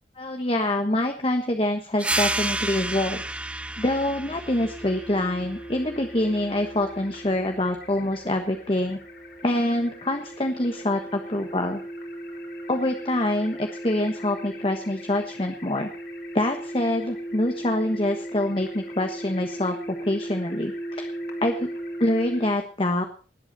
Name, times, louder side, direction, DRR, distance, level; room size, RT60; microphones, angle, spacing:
voice 1, 0.2-3.2 3.8-9.0 9.4-11.8 12.7-15.9 16.3-21.1 21.4-21.7 22.0-23.0, left 1 dB, 30° left, 6 dB, 1.3 m, -25 dB
sound 1, 2.0-7.2, right 2 dB, 5° right, 0.7 m, -31 dB
sound 2, 4.5-22.5, right 1 dB, 60° left, 4.3 m, -37 dB
19.5 x 8.2 x 6.8 m, 0.41 s
head